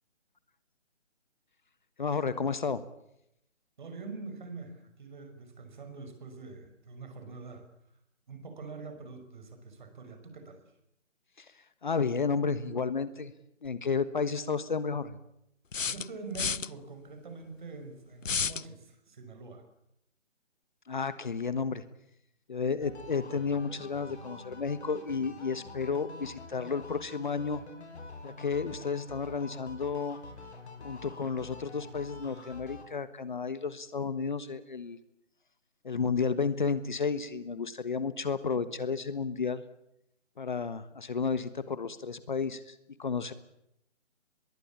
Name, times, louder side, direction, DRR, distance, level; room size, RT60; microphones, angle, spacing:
voice 1, 2.0-2.8 11.4-11.5 11.8-13.3 13.6-15.2 20.9-21.8 22.5-27.6 28.2-30.2 30.8-35.0 35.8-39.6 40.4-43.3, left 5 dB, 40° left, 14 dB, 1.4 m, -32 dB
voice 2, 3.8-7.7 8.3-10.6 15.9-19.6, right 4 dB, 40° right, 7 dB, 5.8 m, -44 dB
sound 1, 13.7-13.8 15.7-16.7 18.2-18.7, left 6 dB, 90° left, 0.9 m, -31 dB
sound 2, 22.8-32.8, left 3 dB, 60° left, 6.4 m, -46 dB
24.5 x 22.0 x 8.6 m, 0.79 s
figure-of-eight pair, 160°, 37 cm